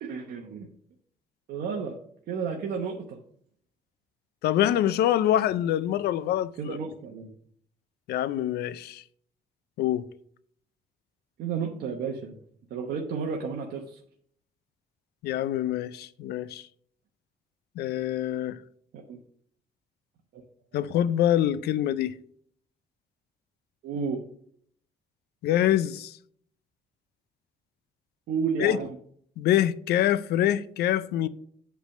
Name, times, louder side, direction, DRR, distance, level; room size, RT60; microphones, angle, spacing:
voice 1, 0.0-0.7 1.5-2.0 2.3-3.2 6.6-7.3 11.4-12.4 12.7-14.0 19.1-19.2 20.3-20.4 23.8-24.2 28.3-29.0, right 6 dB, 70° right, 1.0 m, -32 dB
voice 2, 4.4-6.8 8.1-9.0 9.8-10.0 15.2-16.6 17.8-18.6 20.7-22.1 25.4-26.1 28.6-28.8 29.4-31.3, left 12 dB, 80° left, 0.5 m, -25 dB
8.1 x 3.4 x 6.5 m
cardioid pair, 145°, 16 cm